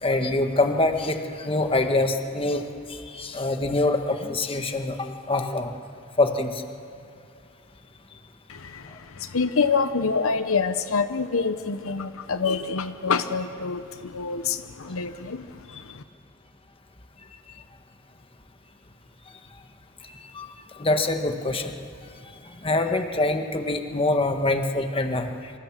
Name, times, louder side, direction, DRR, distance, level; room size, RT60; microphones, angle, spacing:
voice 1, 0.0-5.7 6.2-6.6 20.0-20.5 20.8-21.7 22.6-25.5, left 2 dB, 25° left, 5 dB, 1.5 m, -25 dB
voice 2, 8.5-16.0, left 5 dB, 70° left, 10 dB, 0.9 m, -27 dB
27.0 x 25.5 x 7.6 m, 2.5 s
head